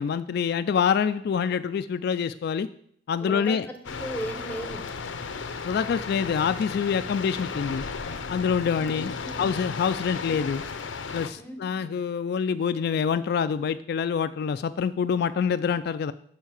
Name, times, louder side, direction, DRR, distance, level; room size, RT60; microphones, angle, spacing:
voice 1, 0.0-2.7 3.1-3.7 5.6-7.9 8.3-10.6 11.1-16.1, left 6 dB, 55° left, 11 dB, 0.3 m, -26 dB
voice 2, 3.2-4.9 8.8-9.5 11.4-11.8, right 1 dB, 10° left, 5 dB, 0.8 m, -37 dB
sound 1, 3.8-11.3, left 5 dB, 90° left, 0.7 m, -35 dB
7.2 x 5.6 x 7.4 m, 0.67 s
head